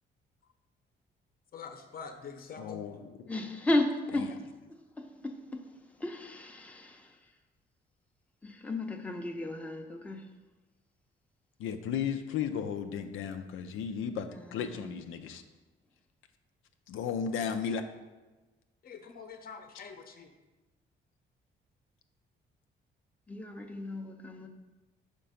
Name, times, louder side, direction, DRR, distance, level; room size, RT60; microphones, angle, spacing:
voice 1, 1.5-3.0 18.8-20.3, left 5 dB, 45° left, 0.8 m, -45 dB
voice 2, 2.6-3.1 4.2-4.3 11.6-15.4 16.9-17.8, left 7 dB, 85° left, 0.6 m, -34 dB
voice 3, 3.3-4.4 5.0-5.7 6.0-7.1 8.4-10.2 14.3-14.9 23.3-24.5, left 1 dB, 5° left, 0.7 m, -34 dB
5.2 x 4.5 x 5.7 m
cardioid pair, 90°, 20 cm